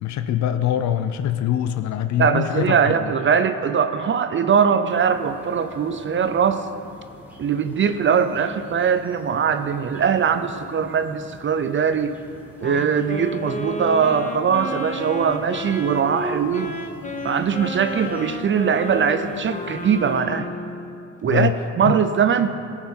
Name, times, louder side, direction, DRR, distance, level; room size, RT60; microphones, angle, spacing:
voice 1, 0.0-3.1 21.2-21.5 21.8-21.9, left 10 dB, 70° left, 10 dB, 0.5 m, -23 dB
voice 2, 2.2-6.7 7.4-12.1 12.6-16.8 17.2-20.5 21.2-21.5 21.8-22.5, right 7 dB, 40° right, 10 dB, 0.5 m, -21 dB
Brass instrument, 2.7-6.6, left 2 dB, 80° right, 1.6 m, -43 dB
sound 1, 4.8-20.2, equal, 5° right, 2.7 m, -46 dB
Wind instrument woodwind instrument, 12.6-20.9, left 1 dB, 25° left, 1.1 m, -31 dB
17.5 x 5.8 x 4.4 m, 2.6 s
cardioid pair, 90°, 30 cm